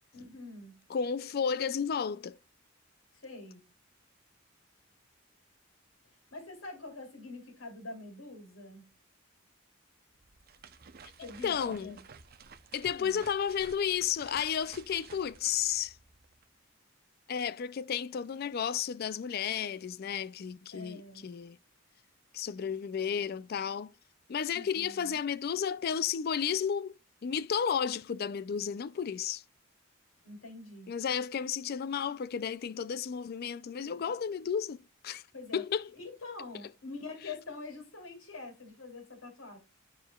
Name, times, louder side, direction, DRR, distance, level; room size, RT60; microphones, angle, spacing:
voice 1, 0.1-0.8 3.1-3.6 6.3-8.9 11.2-12.0 12.9-13.2 20.7-21.2 24.5-25.2 30.2-30.9 35.3-35.6 35.9-39.6, left 3 dB, 90° left, 2.8 m, -45 dB
voice 2, 0.9-2.4 11.2-12.0 12.7-16.0 17.3-21.6 22.3-23.9 24.3-26.9 27.2-29.4 30.9-34.8 35.0-35.2 35.5-35.9, left 7 dB, 50° left, 0.3 m, -32 dB
sound 1, 10.1-16.5, right 5 dB, 50° right, 0.6 m, -53 dB
11.5 x 4.5 x 2.3 m
head